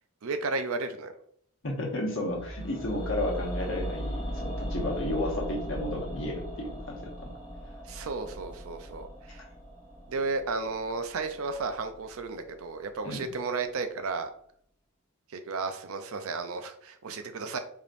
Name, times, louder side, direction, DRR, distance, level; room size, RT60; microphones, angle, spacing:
voice 1, 0.2-1.1 7.9-9.4 10.1-14.3 15.3-17.6, right 4 dB, 75° right, 8 dB, 0.5 m, -33 dB
voice 2, 1.6-7.3 13.0-13.3, left 1 dB, 60° left, 0 dB, 1.1 m, -33 dB
sound 1, 2.2-12.4 12.6-12.7, equal, 25° left, 1.1 m, -38 dB
5.0 x 2.8 x 2.5 m, 0.65 s
head